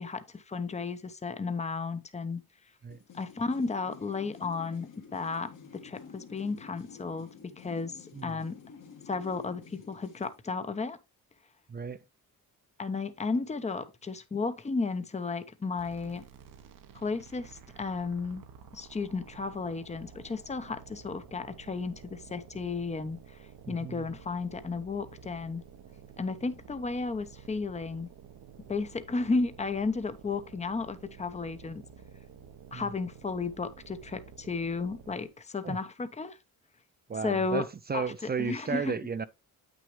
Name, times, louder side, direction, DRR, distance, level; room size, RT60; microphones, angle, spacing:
voice 1, 0.0-2.4 3.1-8.6 9.1-11.0 12.8-16.2 16.9-18.4 18.7-25.6 26.2-28.1 28.7-31.8 32.7-36.4 37.2-37.6 37.9-38.1 38.4-39.0, left 4 dB, 20° left, 0.8 m, -33 dB
sound 1, 2.9-10.4, left 6 dB, 60° left, 1.8 m, -50 dB
sound 2, 15.8-35.4, right 7 dB, 65° right, 1.0 m, -51 dB
voice 2, 23.7-24.1 32.7-32.9 35.6-35.8 37.1-39.3, right 5 dB, 25° right, 0.5 m, -34 dB
8.4 x 6.3 x 3.2 m
cardioid pair, 95°, 36 cm